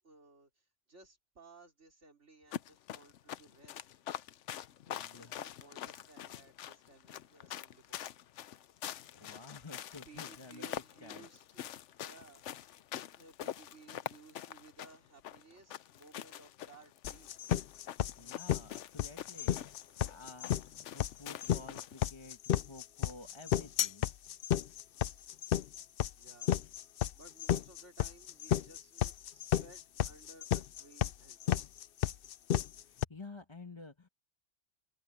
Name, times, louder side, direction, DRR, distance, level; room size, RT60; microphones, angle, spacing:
voice 1, 0.0-4.0 4.9-8.1 10.1-11.7 12.0-12.4 13.1-17.3 26.1-26.6 27.1-31.6, right 3 dB, 85° right, 4.2 m, -59 dB
sound 1, 2.5-22.1, left 11 dB, 85° left, 1.0 m, -45 dB
voice 2, 4.9-5.4 9.0-11.3 18.2-22.4 22.6-24.1 26.6-26.7 32.8-34.1, left 3 dB, 25° left, 1.4 m, -51 dB
sound 2, 17.0-33.0, left 11 dB, 60° left, 0.7 m, -32 dB
open air
omnidirectional pair, 1.2 m